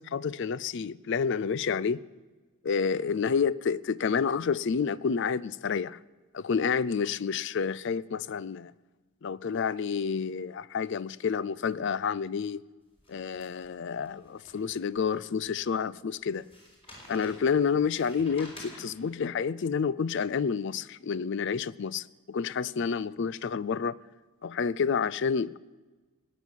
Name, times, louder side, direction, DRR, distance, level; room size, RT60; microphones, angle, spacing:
voice 1, 0.0-2.0 2.6-6.0 6.3-8.7 9.2-12.6 13.1-16.5 17.1-24.0 24.4-25.6, left 6 dB, 55° left, 0.4 m, -29 dB
sound 1, 13.0-15.0 15.5-15.6 16.3-19.2, left 1 dB, 25° left, 4.2 m, -50 dB
18.5 x 9.2 x 7.3 m
head